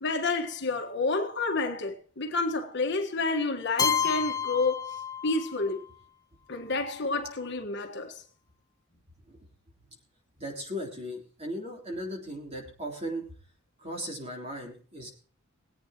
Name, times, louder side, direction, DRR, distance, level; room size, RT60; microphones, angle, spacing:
voice 1, 0.0-5.8 6.5-8.2, left 3 dB, 55° left, 1.5 m, -29 dB
Keyboard (musical), 3.8-5.7, left 7 dB, 15° left, 0.5 m, -29 dB
voice 2, 10.4-13.2 13.8-15.1, equal, 30° right, 3.5 m, -37 dB
22.5 x 8.8 x 3.0 m
head